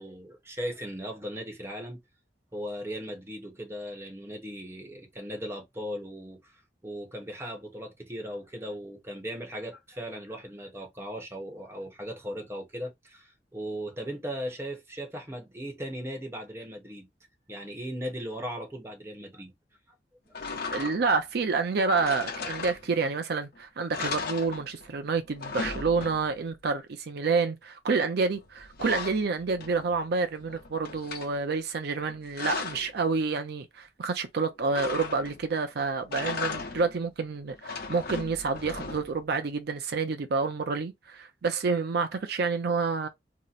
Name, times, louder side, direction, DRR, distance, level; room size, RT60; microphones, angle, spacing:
voice 1, 0.0-2.0 2.5-17.1 17.5-19.5 20.2-20.4, equal, 15° right, 0.9 m, -38 dB
sound 1, 20.3-21.2 21.9-23.2 23.5-23.6 23.9-25.0 25.2-26.5 28.2-30.0 30.4-31.3 32.0-32.9 34.7-35.5 36.0-37.0 37.5-39.3, left 4 dB, 60° left, 0.9 m, -37 dB
voice 2, 20.7-43.1, right 4 dB, 65° right, 0.5 m, -28 dB
2.8 x 2.0 x 3.9 m
head